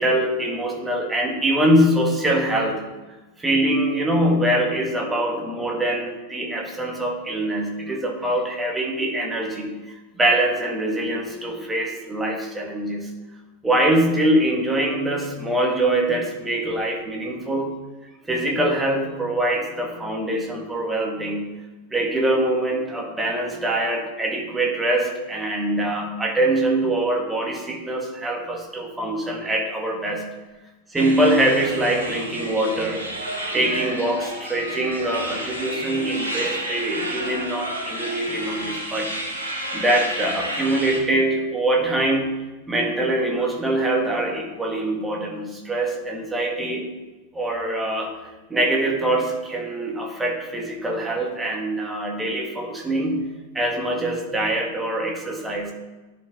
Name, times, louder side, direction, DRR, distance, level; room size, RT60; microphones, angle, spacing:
voice 1, 0.0-2.8 3.4-13.1 13.6-17.7 18.3-21.4 21.9-30.2 30.9-33.1 33.5-39.1 39.7-42.3 42.7-46.9 47.3-48.1 48.5-53.3 53.5-55.7, right 1 dB, 10° right, 0 dB, 1.8 m, -23 dB
sound 1, 31.0-41.0, right 1 dB, 80° right, 2.6 m, -31 dB
11.0 x 5.4 x 3.8 m, 1.2 s
figure-of-eight pair, 90°, 0 cm